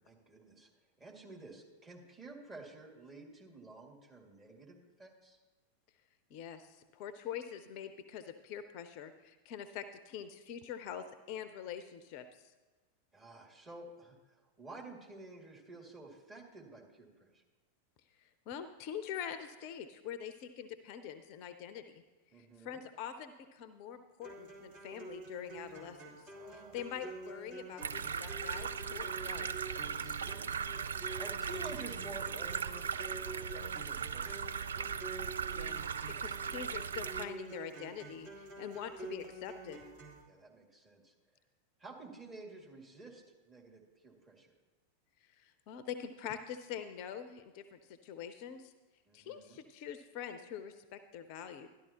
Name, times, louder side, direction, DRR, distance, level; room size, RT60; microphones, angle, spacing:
voice 1, 0.1-0.7 1.0-5.4 13.1-14.2 14.6-17.4 22.3-22.8 26.3-26.8 29.8-32.9 33.3-34.4 40.3-41.1 41.8-44.5 49.1-49.6, right 3 dB, 20° right, -2 dB, 2.3 m, -51 dB
voice 2, 6.3-12.5 18.2-22.0 22.3-26.2 26.5-29.5 35.5-39.8 45.3-48.7 49.1-51.7, left 8 dB, 45° left, 11 dB, 0.6 m, -45 dB
sound 1, 24.2-40.2, right 2 dB, 45° right, 3.0 m, -48 dB
sound 2, 27.8-37.3, right 7 dB, 70° right, 0.4 m, -38 dB
12.5 x 12.0 x 2.9 m, 1.2 s
figure-of-eight pair, 90°, 0 cm